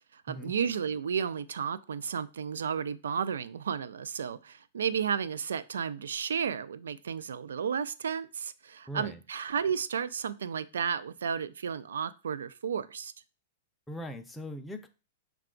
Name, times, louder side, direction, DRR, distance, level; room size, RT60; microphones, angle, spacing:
voice 1, 0.1-13.1, right 7 dB, 90° right, 14 dB, 0.3 m, -33 dB
voice 2, 8.9-9.2 13.9-14.9, equal, 5° left, 5 dB, 0.5 m, -40 dB
5.6 x 2.3 x 3.7 m, 0.33 s
hypercardioid pair, 135°, 0 cm